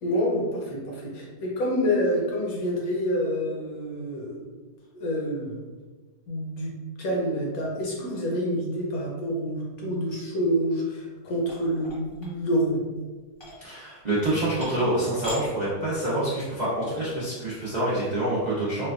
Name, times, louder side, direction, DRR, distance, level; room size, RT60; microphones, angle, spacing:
voice 1, 0.0-4.4 4.9-5.6 6.3-12.8, equal, 65° left, -2 dB, 1.1 m, -27 dB
sound 1, 11.4-12.7 13.3-13.6 14.2-14.3 14.6-14.9 15.2-15.4 15.8-16.3, left 1 dB, 35° left, 0.4 m, -39 dB
voice 2, 13.6-18.9, right 1 dB, 80° right, -9 dB, 0.4 m, -27 dB
4.3 x 2.2 x 2.4 m, 1.3 s
omnidirectional pair, 1.9 m